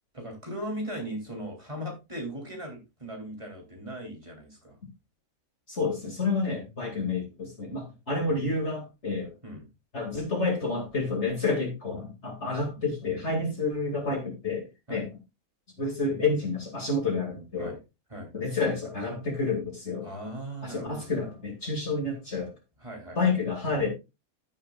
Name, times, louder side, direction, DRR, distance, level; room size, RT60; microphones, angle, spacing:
voice 1, 0.1-4.8 9.4-9.7 14.9-15.0 17.6-17.8 18.1-18.3 20.0-21.0 22.8-23.2, equal, 20° right, 1 dB, 3.4 m, -38 dB
voice 2, 5.7-9.3 9.9-15.1 15.8-17.8 18.3-20.1 20.6-22.5 23.2-23.9, left 3 dB, 50° left, 2 dB, 2.7 m, -29 dB
14.5 x 7.5 x 2.4 m, 0.25 s
omnidirectional pair, 1.5 m